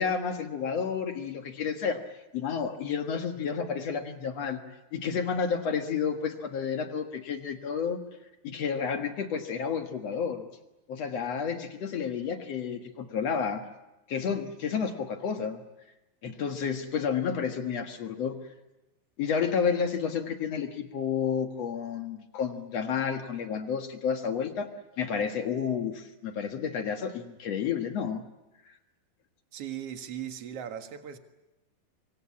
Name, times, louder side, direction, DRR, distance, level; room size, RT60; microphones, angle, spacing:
voice 1, 0.0-4.6 4.9-8.0 8.4-10.5 10.9-13.6 14.1-15.6 16.2-18.4 19.2-24.7 25.0-28.2, left 6 dB, 55° left, 6 dB, 2.0 m, -31 dB
voice 2, 29.5-31.2, right 9 dB, 50° right, 7 dB, 2.1 m, -38 dB
25.0 x 24.5 x 8.7 m, 0.99 s
omnidirectional pair, 4.7 m